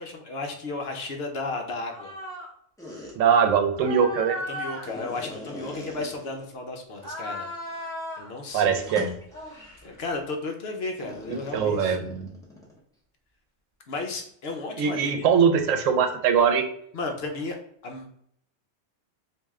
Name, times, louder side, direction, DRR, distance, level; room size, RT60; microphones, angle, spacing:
voice 1, 0.0-2.1 4.5-7.5 8.2-8.9 9.5-12.2 13.9-15.3 16.9-17.6 17.8-18.1, left 3 dB, 60° left, 3 dB, 0.8 m, -34 dB
sound 1, 1.9-2.5 2.8-3.1 3.7-6.5 6.9-8.3 8.8-9.9 11.0-12.8, equal, 5° left, 0.7 m, -37 dB
voice 2, 3.2-4.4 8.5-9.1 11.5-12.3 14.8-16.7, right 7 dB, 90° right, 6 dB, 1.0 m, -21 dB
3.1 x 2.6 x 3.5 m, 0.69 s
omnidirectional pair, 1.3 m